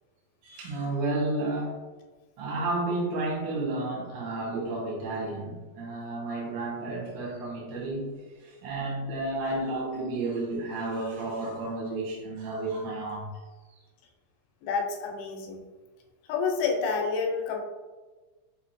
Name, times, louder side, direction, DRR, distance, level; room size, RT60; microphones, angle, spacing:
voice 1, 0.4-1.8 2.4-13.3, right 2 dB, 85° right, -4 dB, 1.0 m, -32 dB
voice 2, 14.6-15.6 16.3-17.6, left 5 dB, 90° left, 2 dB, 2.3 m, -28 dB
6.1 x 2.9 x 2.5 m, 1.3 s
omnidirectional pair, 3.7 m